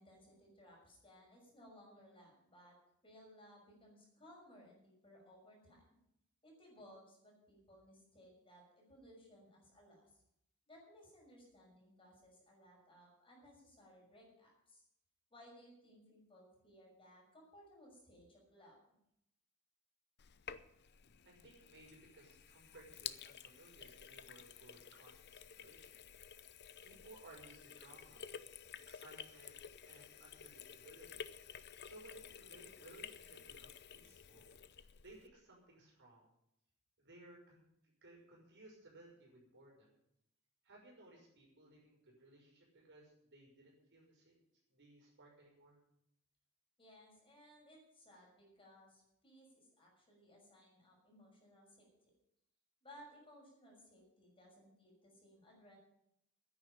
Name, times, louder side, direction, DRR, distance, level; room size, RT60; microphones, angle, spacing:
voice 1, 0.0-2.7 3.0-6.0 6.4-10.2 10.7-14.8 15.3-18.8 46.8-52.1 52.8-55.8, equal, 25° left, -2 dB, 6.1 m, -61 dB
Sink (filling or washing), 20.2-35.3, left 8 dB, 50° left, 0.7 m, -52 dB
voice 2, 21.2-26.0 26.8-28.3 28.9-29.6 29.8-31.2 31.8-34.5 34.8-36.3 37.0-37.6 38.0-39.9 40.6-44.3 44.7-45.8, right 2 dB, 55° right, -2 dB, 5.9 m, -60 dB
10.5 x 9.4 x 10.0 m, 0.79 s
head